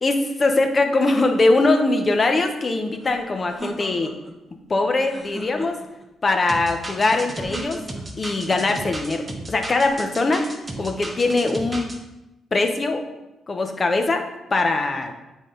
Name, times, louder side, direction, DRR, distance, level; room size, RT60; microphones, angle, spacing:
voice 1, 0.0-4.1 4.7-5.8 6.2-7.8 8.2-10.5 10.8-11.9 12.5-13.0 13.5-14.3 14.5-15.1, left 2 dB, 40° left, 5 dB, 0.8 m, -21 dB
sound 1, 3.0-4.4 5.0-6.1 7.3-8.3 9.7-10.6, right 1 dB, 5° left, 1.2 m, -38 dB
sound 2, 6.5-12.0, right 1 dB, 25° right, 1.2 m, -34 dB
8.2 x 4.1 x 3.9 m, 0.99 s
cardioid pair, 75°, 0 cm